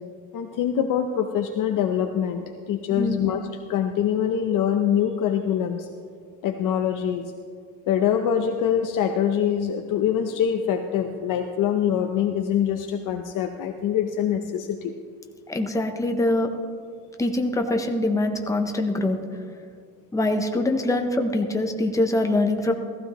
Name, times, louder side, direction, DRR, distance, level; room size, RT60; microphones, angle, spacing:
voice 1, 0.3-3.4 3.7-5.9 6.4-7.3 7.9-14.9, left 9 dB, 60° left, 5 dB, 0.7 m, -24 dB
voice 2, 2.9-3.2 15.5-16.5 17.2-19.2 20.1-22.7, left 1 dB, 10° left, 4 dB, 0.7 m, -23 dB
15.0 x 15.0 x 3.0 m, 2.1 s
cardioid pair, 165°, 37 cm